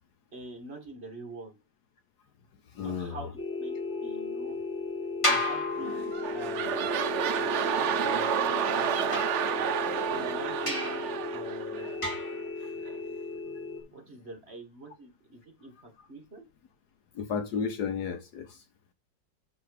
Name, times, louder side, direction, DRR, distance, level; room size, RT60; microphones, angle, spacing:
voice 1, 0.3-1.6 2.8-4.6 5.2-7.2 8.0-9.2 10.1-12.0 13.9-16.5, right 2 dB, 35° right, 1.8 m, -45 dB
voice 2, 2.7-3.2 9.9-10.0 17.2-18.6, left 6 dB, 65° left, 1.3 m, -33 dB
sound 1, 3.4-13.8, left 3 dB, 35° left, 3.3 m, -35 dB
sound 2, 5.2-6.6 9.1-10.0 10.7-11.1 12.0-12.5, left 1 dB, 15° left, 2.2 m, -32 dB
sound 3, 5.8-12.3 12.9-13.0, right 9 dB, 80° right, 0.6 m, -30 dB
6.8 x 6.2 x 4.8 m
omnidirectional pair, 2.0 m